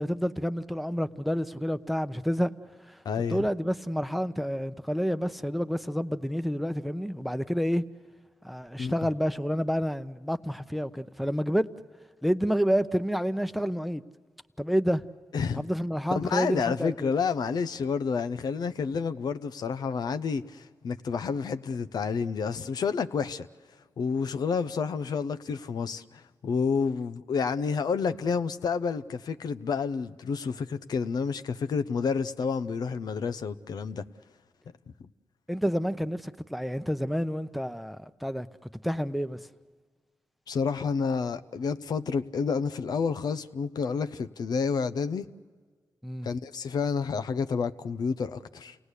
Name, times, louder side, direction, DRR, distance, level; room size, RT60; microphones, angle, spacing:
voice 1, 0.0-2.5 2.9-3.0 3.3-7.8 8.4-11.7 12.2-14.0 14.6-15.0 15.6-17.1 35.5-38.5 38.8-39.4 46.0-46.3, equal, ahead, 0.8 m, -29 dB
voice 2, 3.0-3.4 8.8-8.9 15.3-15.6 16.1-23.5 24.0-34.0 40.5-45.2 46.2-48.8, left 5 dB, 75° left, 0.6 m, -29 dB
28.5 x 18.0 x 8.3 m
cardioid pair, 55°, 7 cm